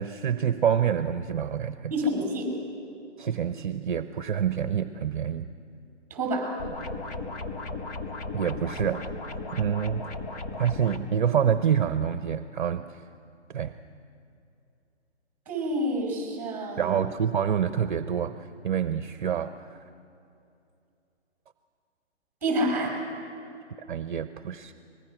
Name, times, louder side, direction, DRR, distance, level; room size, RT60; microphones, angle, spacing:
voice 1, 0.0-1.9 3.2-5.5 8.3-10.1 10.6-13.0 13.5-13.7 16.8-19.8 23.9-24.7, right 8 dB, 45° right, 10 dB, 0.9 m, -27 dB
voice 2, 1.9-2.5 6.1-6.5 15.5-17.0 22.4-22.9, equal, 5° right, 1 dB, 5.7 m, -28 dB
sound 1, 6.6-11.0, left 3 dB, 35° left, 1.8 m, -36 dB
24.5 x 21.5 x 6.1 m, 2.7 s
hypercardioid pair, 160°, 35 cm